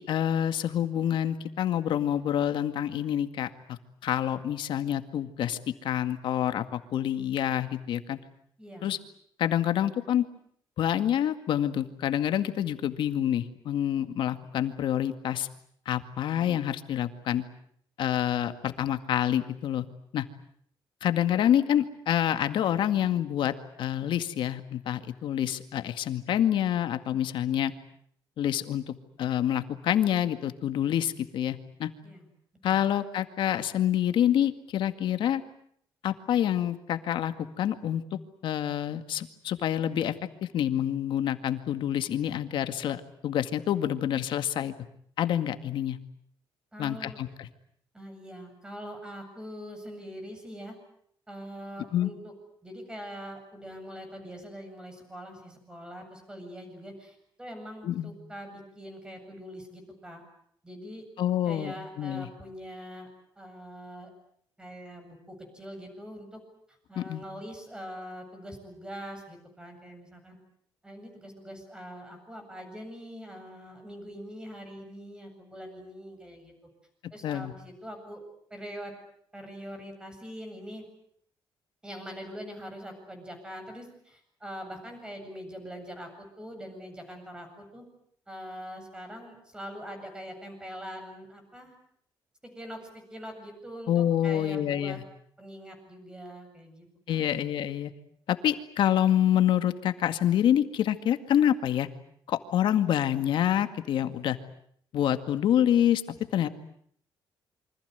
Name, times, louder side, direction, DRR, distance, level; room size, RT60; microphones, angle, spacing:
voice 1, 0.0-8.2 8.8-9.0 9.4-10.2 10.8-15.5 15.9-17.4 18.0-19.8 20.1-20.3 21.0-27.7 28.4-31.9 32.6-35.4 36.0-38.0 38.4-40.1 40.5-44.7 45.2-46.0 46.8-47.5 51.9-52.1 57.8-58.1 61.2-62.3 67.0-67.2 77.2-77.5 93.9-95.0 97.1-97.9 98.3-101.9 102.3-104.4 104.9-106.0 106.3-106.5, left 10 dB, 70° left, 9 dB, 2.0 m, -27 dB
voice 2, 8.6-8.9 32.0-32.3 32.7-32.8 46.7-47.2 47.9-50.8 51.3-52.3 52.6-60.2 60.6-61.1 61.5-63.1 63.4-64.1 64.6-66.4 66.7-70.4 70.8-76.5 77.1-78.2 78.5-78.9 79.3-80.9 81.8-87.8 88.3-91.7 92.4-95.0 95.4-97.3, equal, 10° right, 5 dB, 8.0 m, -43 dB
28.0 x 25.0 x 8.1 m, 0.66 s
cardioid pair, 140°, 9 cm